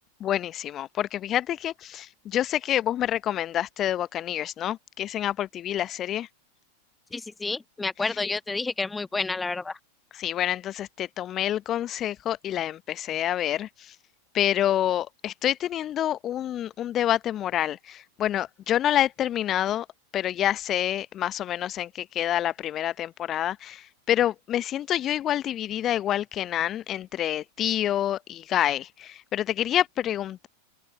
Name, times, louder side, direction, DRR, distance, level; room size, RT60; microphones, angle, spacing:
voice 1, 0.2-6.3 10.1-13.9 14.3-19.9 20.1-30.5, left 11 dB, 30° left, 0.9 m, -27 dB
voice 2, 7.1-9.8, left 3 dB, 10° left, 1.3 m, -30 dB
open air
figure-of-eight pair, 90°, 0 cm